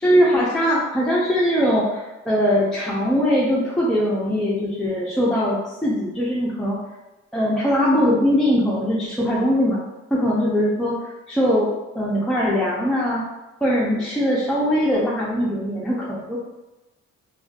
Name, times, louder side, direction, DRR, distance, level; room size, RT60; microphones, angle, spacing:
voice 1, 0.0-6.8 7.3-9.8 10.1-11.7 11.9-13.2 13.6-16.4, equal, ahead, -6 dB, 0.4 m, -21 dB
2.5 x 2.2 x 2.4 m, 1.0 s
cardioid pair, 90°, 30 cm